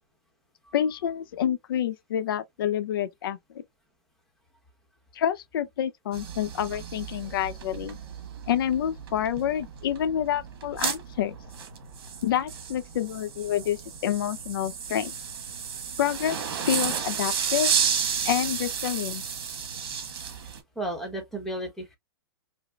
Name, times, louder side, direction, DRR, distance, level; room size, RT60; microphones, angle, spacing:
voice 1, 0.7-3.6 5.1-8.0 8.5-11.3 12.2-15.1 16.0-16.4 16.7-17.7 18.2-19.2, left 10 dB, 60° left, 0.6 m, -28 dB
sound 1, 6.1-20.6, right 7 dB, 60° right, 1.3 m, -32 dB
voice 2, 20.8-22.0, right 1 dB, 5° left, 0.9 m, -33 dB
5.1 x 2.0 x 2.3 m
hypercardioid pair, 150°, 13 cm